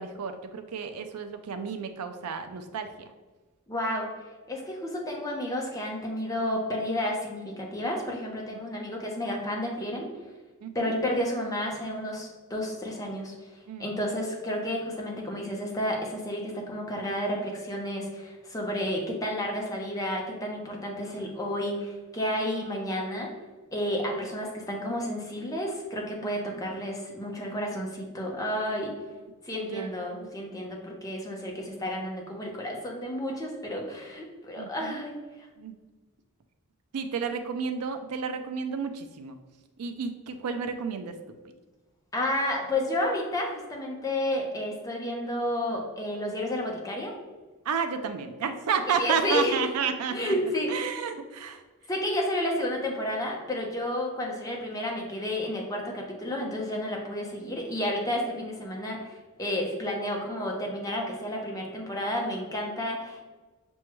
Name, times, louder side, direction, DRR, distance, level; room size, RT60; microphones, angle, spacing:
voice 1, 0.0-3.1 10.6-10.9 13.7-13.9 26.5-26.6 29.6-30.3 34.6-35.0 35.6-35.7 36.9-39.4 39.8-41.2 47.7-50.3 50.7-51.6, right 6 dB, 85° right, 7 dB, 0.4 m, -31 dB
voice 2, 3.7-4.1 4.5-10.1 10.7-13.3 13.8-23.3 23.7-28.9 29.5-35.2 42.1-47.1 49.0-49.6 50.1-50.8 51.9-63.2, left 1 dB, 15° left, -1 dB, 0.7 m, -31 dB
6.1 x 2.3 x 3.0 m, 1.2 s
head